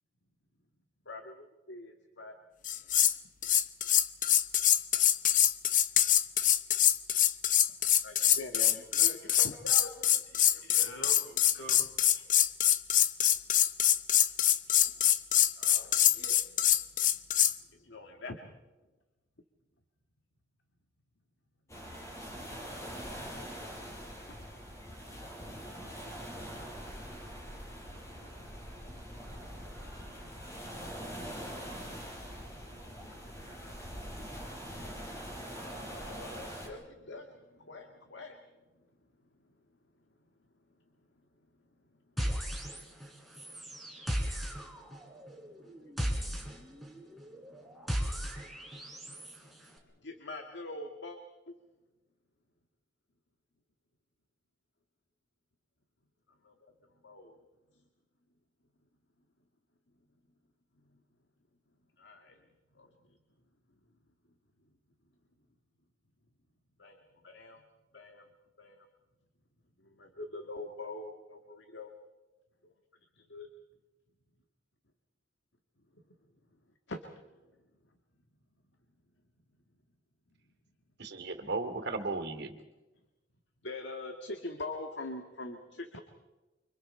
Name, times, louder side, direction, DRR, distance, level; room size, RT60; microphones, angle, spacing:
voice 1, 1.1-2.4 8.0-10.2 10.5-11.0 14.3-14.4 14.8-15.1 15.6-16.4 17.7-18.6 24.3-24.5 25.3-38.4 43.6-43.7 45.5-49.2 50.0-51.2 51.5-51.6 56.4-56.5 57.0-57.4 57.7-57.8 60.8-61.0 62.0-62.4 62.7-63.2 66.8-67.6 67.9-68.3 68.6-68.9 69.8-71.9 72.6-72.7 73.2-73.5 76.9-77.0 83.6-86.0, left 2 dB, 70° left, 4 dB, 2.0 m, -46 dB
sound 1, 2.6-3.2 3.4-17.5, left 11 dB, 45° left, 0.8 m, -25 dB
voice 2, 10.3-12.3, right 1 dB, 85° left, 1 dB, 6.7 m, -47 dB
sound 2, 21.7-36.7, equal, 15° left, 5.2 m, -43 dB
sound 3, 42.2-43.1 43.3-49.4, equal, ahead, 4.0 m, -36 dB
voice 3, 81.0-82.6, right 3 dB, 65° right, 7 dB, 2.6 m, -35 dB
29.5 x 25.5 x 4.5 m, 1.1 s
head